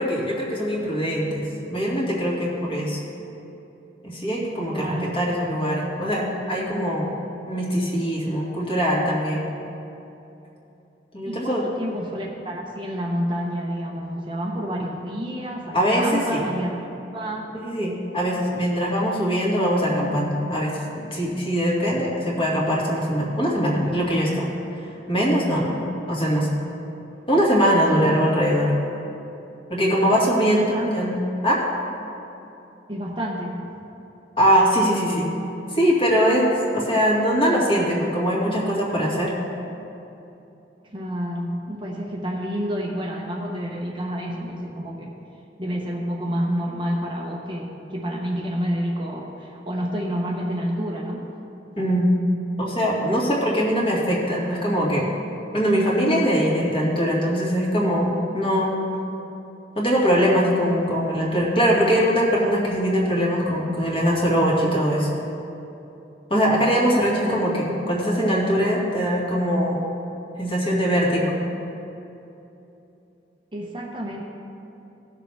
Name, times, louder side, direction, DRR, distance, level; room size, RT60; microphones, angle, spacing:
voice 1, 0.0-3.0 4.0-7.1 7.5-9.5 11.1-11.7 15.7-16.4 17.5-24.5 24.8-26.5 27.3-28.7 29.7-31.6 34.4-35.3 35.7-39.3 51.8-52.1 52.6-55.1 55.5-58.7 59.8-65.1 66.3-69.9 70.4-71.4, equal, 30° left, -4 dB, 2.0 m, -22 dB
voice 2, 4.7-5.1 11.2-16.8 17.1-17.5 30.4-30.9 32.9-33.6 40.8-45.1 45.6-51.3 60.4-60.8 67.2-67.4 73.5-74.2, equal, 25° right, -2 dB, 0.9 m, -29 dB
17.5 x 6.5 x 3.5 m, 2.9 s
head